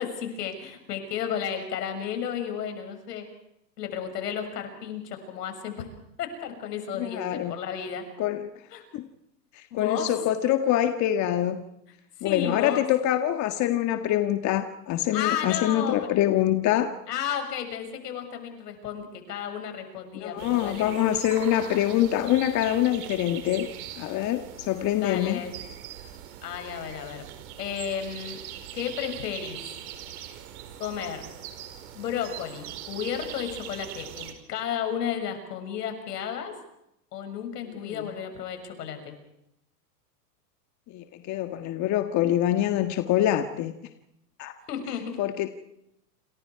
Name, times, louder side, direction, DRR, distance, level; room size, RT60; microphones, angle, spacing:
voice 1, 0.0-3.3 3.8-5.9 6.2-8.1 8.7-8.8 9.7-10.1 12.2-12.9 15.1-16.0 17.1-20.9 25.0-25.5 26.4-27.2 27.6-28.4 28.7-29.6 30.8-31.2 31.9-36.6 37.1-39.1 44.7-45.2, left 8 dB, 75° left, 6 dB, 6.8 m, -33 dB
voice 2, 7.0-7.6 8.2-8.5 8.9-9.1 9.5-11.6 12.2-17.0 20.1-23.7 24.0-25.4 37.8-38.0 40.9-43.7 44.4-44.5 45.2-45.5, left 12 dB, 35° left, 7 dB, 1.8 m, -25 dB
sound 1, 20.4-34.3, right 11 dB, 60° right, 4.9 m, -41 dB
28.5 x 27.5 x 4.8 m, 0.83 s
hypercardioid pair, 120°, 48 cm